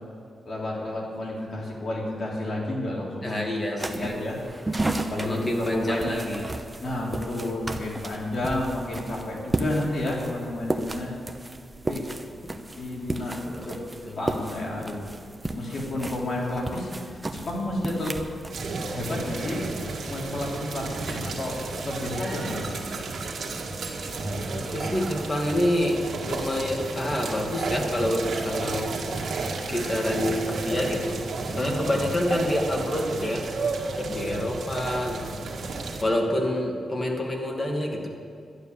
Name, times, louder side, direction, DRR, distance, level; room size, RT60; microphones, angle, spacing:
voice 1, 0.4-4.7 5.1-6.2 6.8-11.1 11.9-12.0 12.7-13.8 14.1-15.1 15.5-18.1 18.9-19.6 20.0-22.9 31.5-31.7, left 1 dB, 50° left, -3 dB, 3.3 m, -31 dB
voice 2, 3.2-4.2 5.2-6.5 12.4-12.5 13.4-13.6 14.1-14.2 24.5-28.9 29.7-31.2 31.5-33.5 34.0-35.4 36.0-38.1, left 1 dB, 25° left, 1 dB, 2.1 m, -27 dB
sound 1, 3.8-18.5, right 2 dB, 15° right, 0.9 m, -34 dB
sound 2, 18.5-36.0, right 3 dB, 65° right, 2.0 m, -32 dB
12.0 x 11.0 x 7.1 m, 2.3 s
wide cardioid pair, 115°, 0 cm